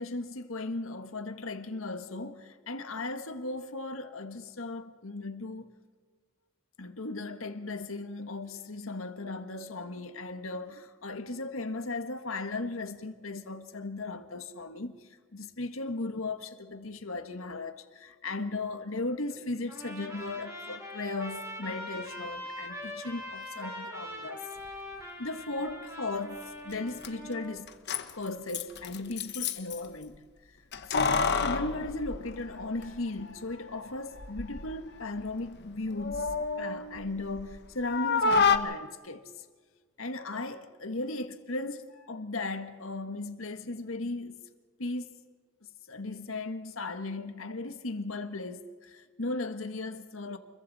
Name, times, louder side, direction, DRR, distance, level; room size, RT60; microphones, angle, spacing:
voice 1, 0.0-5.7 6.8-24.5 25.2-27.7 28.1-30.2 30.5-30.6 30.9-39.3 40.0-44.4 44.8-45.1 45.9-50.4, left 2 dB, 90° left, 1.7 m, -37 dB
Trumpet, 19.7-27.6, left 1 dB, 15° right, 3.6 m, -42 dB
Keys jangling, 26.7-26.8 27.0-27.1 27.7-29.8 30.7-32.9 33.2-33.3 34.1-34.7 35.1-37.5 37.8-38.6, left 5 dB, 55° left, 1.1 m, -29 dB
28.5 x 22.5 x 4.2 m
head